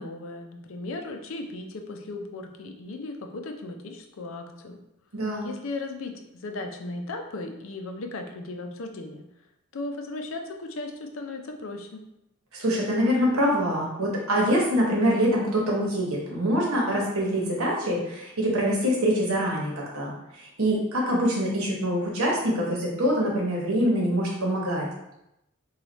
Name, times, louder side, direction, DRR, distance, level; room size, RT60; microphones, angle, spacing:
voice 1, 0.0-4.8 5.4-9.2 9.7-12.0, left 2 dB, 70° left, 4 dB, 0.5 m, -36 dB
voice 2, 5.1-5.5 12.5-24.9, equal, 90° right, -3 dB, 1.0 m, -25 dB
3.2 x 2.3 x 4.0 m, 0.86 s
head